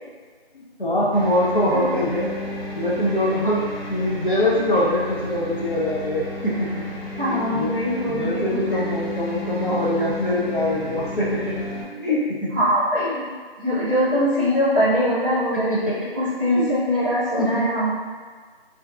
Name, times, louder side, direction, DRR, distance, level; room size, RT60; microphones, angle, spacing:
voice 1, 0.5-3.6 3.9-6.8 7.3-7.7 8.1-11.5 12.0-12.5 13.0-13.2 13.6-13.7 15.5-16.1 16.6-16.8 17.4-17.7, left 1 dB, 55° left, -6 dB, 0.5 m, -23 dB
sound 1, 1.1-11.8, left 1 dB, 75° left, 1.1 m, -32 dB
voice 2, 7.2-8.8 12.5-13.1 13.6-17.9, equal, 20° right, -14 dB, 1.0 m, -22 dB
2.5 x 2.4 x 2.2 m, 1.5 s
figure-of-eight pair, 175°, 31 cm